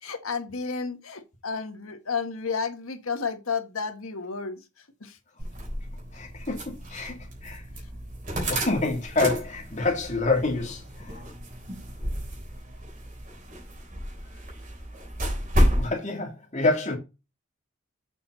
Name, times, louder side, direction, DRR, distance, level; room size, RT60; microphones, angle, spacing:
voice 1, 0.0-4.6 5.0-5.2, left 5 dB, 85° left, 1.4 m, -32 dB
sound 1, 5.4-15.9, equal, 40° right, 3.5 m, -31 dB
voice 2, 6.1-7.2 7.4-7.6 8.5-11.2 15.5-17.0, left 3 dB, 35° left, 2.6 m, -27 dB
6.8 x 5.8 x 3.9 m
head